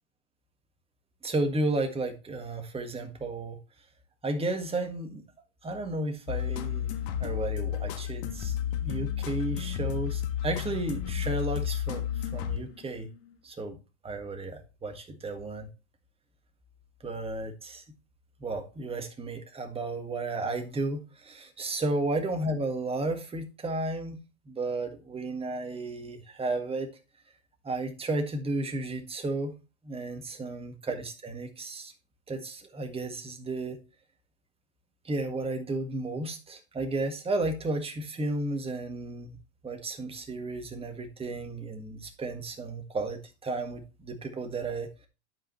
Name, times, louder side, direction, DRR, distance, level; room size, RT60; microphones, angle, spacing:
voice 1, 1.2-3.6 4.2-5.2 5.6-6.9 7.2-8.5 8.8-13.1 13.4-13.8 14.0-15.7 17.0-17.8 18.4-24.2 24.4-26.9 27.6-29.5 29.8-31.9 32.3-33.8 35.0-39.4 39.6-45.1, right 2 dB, 15° right, 1.7 m, -33 dB
sound 1, 6.3-13.1, left 10 dB, 55° left, 1.6 m, -32 dB
11.5 x 5.1 x 3.1 m
hypercardioid pair, 110°, 38 cm